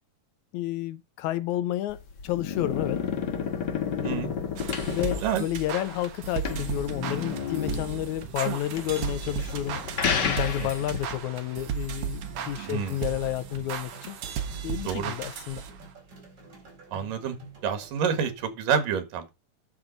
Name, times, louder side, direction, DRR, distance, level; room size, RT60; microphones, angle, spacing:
voice 1, 0.5-3.0 3.7-4.3 4.9-9.8 10.2-14.2 14.6-15.6, left 13 dB, 80° left, 1.8 m, -31 dB
sound 1, 1.9-11.2, left 6 dB, 50° left, 1.4 m, -31 dB
voice 2, 4.0-4.3 5.2-5.5 10.6-10.7 12.7-13.0 14.8-15.1 16.9-17.4 17.6-19.3, right 7 dB, 80° right, 3.2 m, -28 dB
sound 2, 4.6-15.9, right 8 dB, 60° right, 2.0 m, -35 dB
sound 3, 6.3-18.5, right 2 dB, 30° right, 4.5 m, -50 dB
10.5 x 7.1 x 3.9 m
omnidirectional pair, 3.8 m